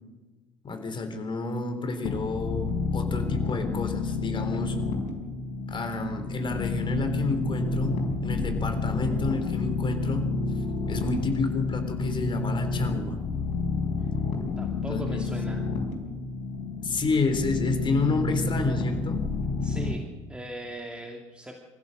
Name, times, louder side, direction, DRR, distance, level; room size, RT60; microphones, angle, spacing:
voice 1, 0.6-4.8 5.7-10.3 10.9-13.2 14.9-15.3 16.8-19.3, left 3 dB, 30° left, 6 dB, 3.6 m, -30 dB
sound 1, 2.0-19.9, left 3 dB, 55° left, 5.0 m, -29 dB
voice 2, 14.6-15.7 19.6-20.0 20.3-21.6, right 1 dB, 5° right, 1 dB, 2.6 m, -39 dB
26.0 x 15.5 x 6.6 m, 1.2 s
figure-of-eight pair, 60°, 15 cm